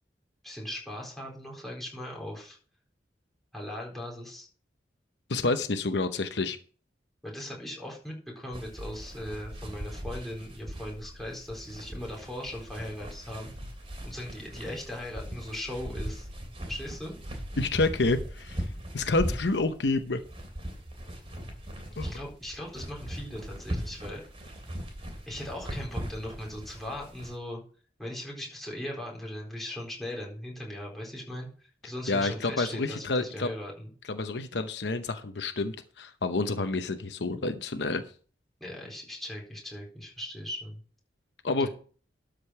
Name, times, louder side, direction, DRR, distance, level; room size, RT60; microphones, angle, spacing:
voice 1, 0.4-2.6 3.5-4.5 7.2-13.5 14.0-16.3 16.7-17.1 21.9-24.2 25.2-27.6 28.0-31.5 31.8-33.9 38.6-40.8 41.6-41.7, left 1 dB, ahead, -3 dB, 4.2 m, -39 dB
voice 2, 5.3-6.6 17.6-18.6 18.9-20.2 22.0-22.1 31.8-33.5 34.1-38.0 41.4-41.7, left 3 dB, 75° left, 8 dB, 0.8 m, -29 dB
sound 1, 8.5-27.3, equal, 35° right, 2.9 m, -39 dB
12.5 x 5.2 x 5.8 m, 0.41 s
head